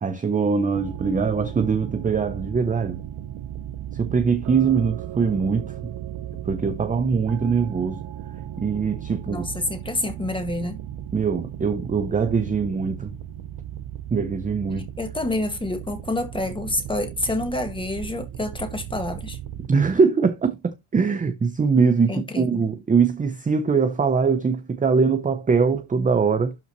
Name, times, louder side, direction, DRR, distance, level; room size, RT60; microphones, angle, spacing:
voice 1, 0.0-3.0 3.9-5.9 6.4-8.0 8.6-9.4 11.1-13.1 14.1-14.9 19.6-26.6, right 5 dB, 15° right, 0.6 m, -22 dB
sound 1, 0.7-19.7, right 11 dB, 80° right, 1.0 m, -36 dB
voice 2, 9.3-10.8 15.0-19.4 22.1-22.6, left 2 dB, 10° left, 1.7 m, -28 dB
12.0 x 5.5 x 3.0 m
cardioid pair, 175°, 47 cm